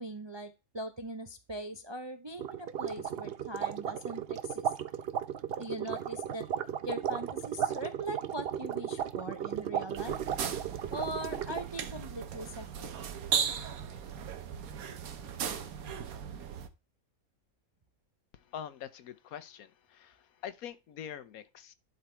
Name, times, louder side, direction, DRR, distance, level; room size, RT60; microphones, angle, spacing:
voice 1, 0.0-4.7 5.6-6.5 6.8-10.2 10.9-13.0, right 1 dB, 35° right, 0.4 m, -41 dB
sound 1, 2.4-11.8, right 9 dB, 55° right, 0.8 m, -35 dB
sound 2, 10.0-16.7, right 7 dB, 75° right, 1.4 m, -37 dB
voice 2, 18.3-21.7, left 9 dB, 80° left, 1.2 m, -44 dB
11.0 x 4.0 x 4.4 m
omnidirectional pair, 1.5 m